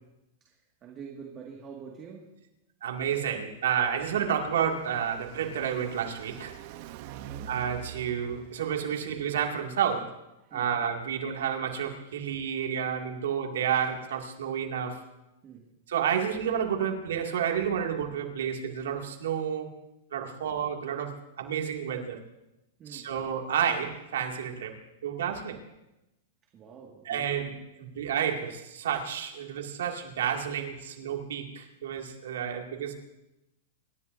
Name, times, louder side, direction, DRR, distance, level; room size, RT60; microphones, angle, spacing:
voice 1, 0.4-2.4 7.1-7.6 10.4-10.7 15.4-15.7 22.8-23.1 26.5-27.5, right 6 dB, 30° right, 0 dB, 1.9 m, -46 dB
voice 2, 2.8-6.6 7.5-10.2 10.5-15.0 15.9-19.7 20.1-22.2 22.9-25.6 27.1-27.5 27.8-32.9, right 8 dB, 85° right, 2 dB, 2.3 m, -30 dB
Car passing by, 3.5-9.1, right 9 dB, 50° right, 0.8 m, -45 dB
27.0 x 13.5 x 2.7 m, 0.93 s
supercardioid pair, 140°, 0 cm